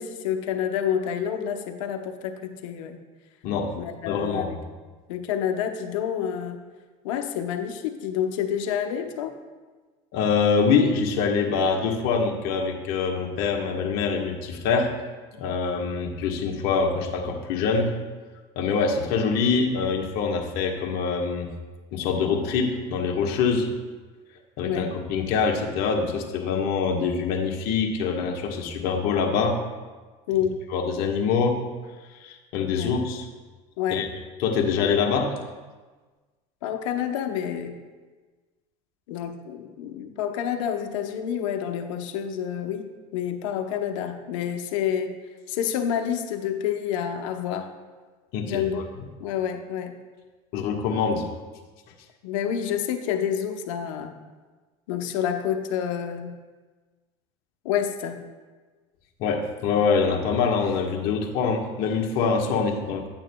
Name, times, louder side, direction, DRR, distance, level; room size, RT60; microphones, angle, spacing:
voice 1, 0.0-3.0 3.8-4.6 5.1-6.6 7.0-9.3 24.6-24.9 30.3-30.6 32.7-33.0 33.8-34.1 36.6-37.8 39.1-45.2 45.5-47.7 48.4-48.9 49.2-49.9 52.2-54.1 54.9-56.3 57.6-58.2, left 9 dB, 85° left, 6 dB, 0.8 m, -28 dB
voice 2, 4.1-4.5 10.1-14.9 15.4-17.9 18.5-21.5 21.9-23.7 24.6-29.6 30.7-31.6 32.2-33.3 33.9-34.1 34.4-35.3 48.3-48.6 50.5-51.3 59.2-63.1, left 5 dB, 65° left, 2 dB, 1.3 m, -24 dB
9.5 x 8.9 x 2.3 m, 1.3 s
supercardioid pair, 90°, 16 cm